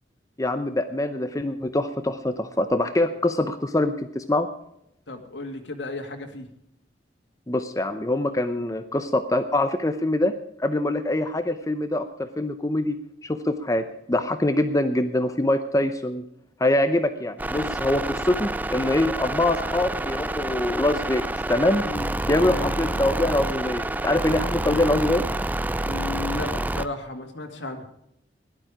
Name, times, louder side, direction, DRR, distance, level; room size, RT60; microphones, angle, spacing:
voice 1, 0.4-4.5 7.5-10.3 10.6-13.0 13.2-16.2 16.6-21.2 21.5-21.8 22.2-25.3, left 1 dB, 20° left, 9 dB, 0.7 m, -24 dB
voice 2, 5.1-6.5 21.8-22.1 22.4-22.8 25.9-27.8, left 2 dB, 90° left, 3 dB, 2.2 m, -34 dB
sound 1, 17.4-26.9, right 1 dB, 10° right, 0.4 m, -28 dB
17.0 x 12.0 x 5.0 m, 0.77 s
head